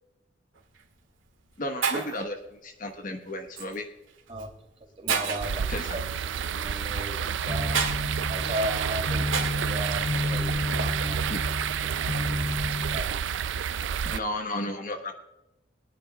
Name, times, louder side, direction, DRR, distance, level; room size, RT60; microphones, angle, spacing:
Shatter, 0.6-0.8 1.5-1.6 1.8-2.3 3.6-3.8 4.4-4.5 5.1-5.6 7.7-8.0 9.3-9.7, right 6 dB, 80° right, 2.1 m, -28 dB
voice 1, 1.6-3.9 5.7-6.0 11.3-11.4 14.0-15.1, left 1 dB, 45° left, 5 dB, 1.2 m, -33 dB
voice 2, 5.0-11.3 11.8-13.2, right 1 dB, 30° right, 1 dB, 2.8 m, -37 dB
sound 1, 5.4-14.2, right 7 dB, 65° right, 0.4 m, -30 dB
sound 2, 7.5-13.0, left 1 dB, 90° left, 1.0 m, -31 dB
22.0 x 10.5 x 2.3 m, 0.94 s
head